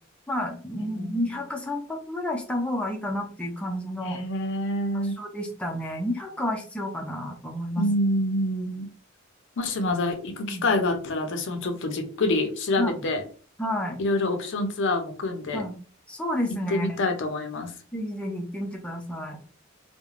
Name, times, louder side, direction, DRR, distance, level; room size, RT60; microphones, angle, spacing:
voice 1, 0.3-4.2 4.9-7.8 10.4-10.7 12.8-13.1 13.6-14.0 15.5-15.8 16.1-17.0 17.9-19.4, left 1 dB, 5° left, 0 dB, 0.4 m, -30 dB
voice 2, 4.0-5.2 7.8-8.9 9.6-13.2 14.0-15.6 16.7-17.7, left 2 dB, 60° left, 6 dB, 0.5 m, -26 dB
3.1 x 2.1 x 2.4 m, 0.40 s
head